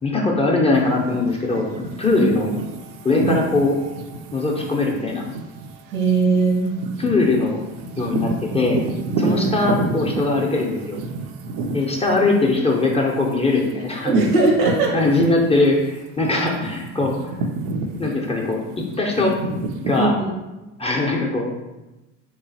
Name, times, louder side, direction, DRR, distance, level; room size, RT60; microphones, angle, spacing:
voice 1, 0.0-2.5 3.0-3.8 4.3-5.2 7.0-7.6 8.0-8.8 9.2-11.0 11.7-14.1 14.9-17.5 17.9-19.3 19.9-20.2 20.8-21.5, left 3 dB, 15° left, -2 dB, 0.5 m, -21 dB
sound 1, 0.7-15.9 16.2-20.0, right 3 dB, 55° right, 0.5 m, -30 dB
voice 2, 5.9-6.7 9.2-9.4 14.0-14.9 20.0-20.3, right 3 dB, 85° right, -1 dB, 1.2 m, -19 dB
3.3 x 3.0 x 2.7 m, 1.0 s
supercardioid pair, 85°, 42 cm